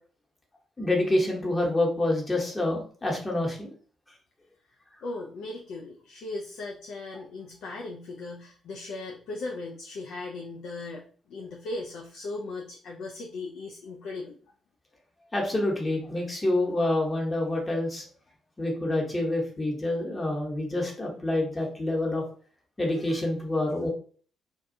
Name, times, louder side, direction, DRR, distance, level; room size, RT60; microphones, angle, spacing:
voice 1, 0.8-3.7 15.3-18.1 18.6-22.2 22.8-23.9, left 1 dB, 25° left, -1 dB, 0.9 m, -27 dB
voice 2, 5.0-14.4, left 2 dB, 60° left, 0 dB, 0.3 m, -38 dB
2.4 x 2.2 x 2.6 m, 0.44 s
figure-of-eight pair, 40°, 0 cm